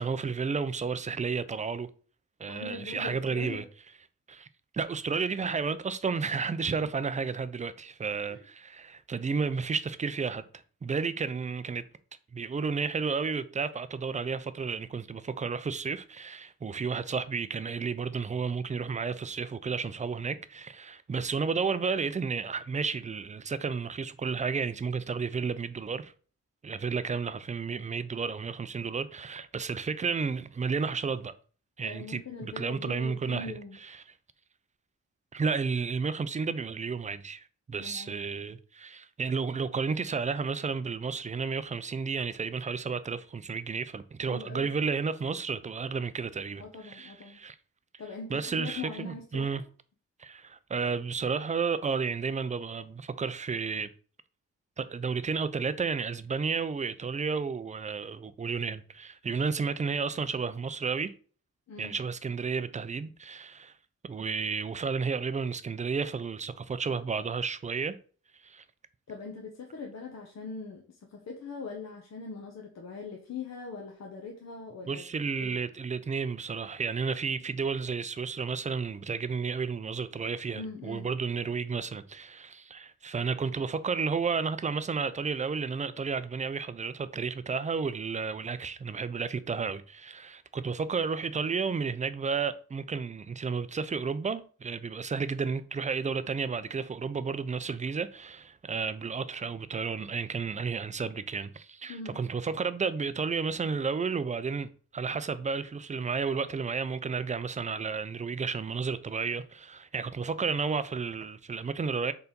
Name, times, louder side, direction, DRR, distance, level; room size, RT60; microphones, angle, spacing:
voice 1, 0.0-1.9 2.4-3.6 4.3-4.5 4.7-10.4 10.8-11.8 12.3-26.1 26.6-31.3 31.8-34.0 35.3-47.6 48.3-49.6 50.2-53.9 54.8-61.1 61.8-63.7 64.0-68.0 68.4-68.6 74.9-112.1, right 5 dB, 25° right, 0.4 m, -32 dB
voice 2, 2.5-3.6 8.3-8.4 31.8-33.8 37.8-38.2 44.3-44.7 46.6-47.4 48.0-49.6 61.7-62.0 69.1-75.0 75.4-75.6 80.5-81.1 101.9-102.2, left 4 dB, 60° left, 0.9 m, -41 dB
4.6 x 4.0 x 5.1 m
wide cardioid pair, 155°, 29 cm